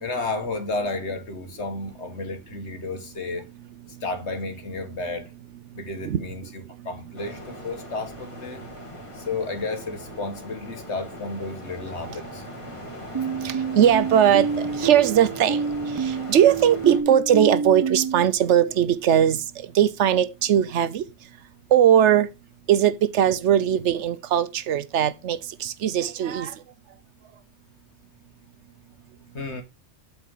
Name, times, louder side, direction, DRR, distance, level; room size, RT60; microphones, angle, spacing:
voice 1, 0.0-3.4 4.0-5.3 5.7-8.6 9.2-12.4 29.3-29.6, left 3 dB, 70° left, 1.8 m, -32 dB
sound 1, 7.1-17.0, left 2 dB, 25° left, 2.5 m, -40 dB
sound 2, 13.1-18.2, right 5 dB, 30° right, 0.4 m, -28 dB
voice 2, 13.4-15.6 16.0-19.4 19.7-21.0 21.7-22.3 22.7-26.5, right 10 dB, 80° right, 1.0 m, -20 dB
8.3 x 4.2 x 5.4 m
omnidirectional pair, 1.2 m